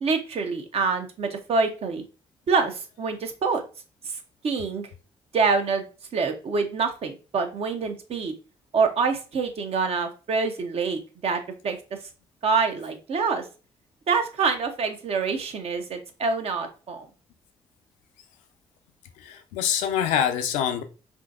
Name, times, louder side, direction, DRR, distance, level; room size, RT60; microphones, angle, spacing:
voice 1, 0.0-2.0 2.5-3.6 4.4-4.9 5.3-5.8 6.1-8.3 8.7-11.8 12.4-13.4 14.1-17.1, right 4 dB, 50° right, 0.7 m, -26 dB
voice 2, 19.2-20.8, left 9 dB, 75° left, 0.4 m, -25 dB
3.7 x 2.6 x 2.4 m
hypercardioid pair, 45°, 13 cm